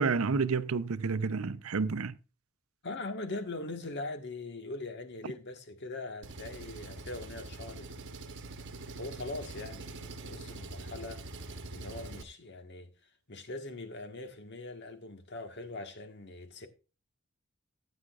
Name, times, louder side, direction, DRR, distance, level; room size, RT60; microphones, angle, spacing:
voice 1, 0.0-2.2, right 4 dB, 85° right, 0.6 m, -29 dB
voice 2, 2.8-8.1 9.0-12.9 13.3-16.7, left 2 dB, 55° left, 1.5 m, -42 dB
Engine, 6.2-12.2, right 2 dB, 60° right, 1.1 m, -44 dB
14.5 x 8.8 x 2.4 m
head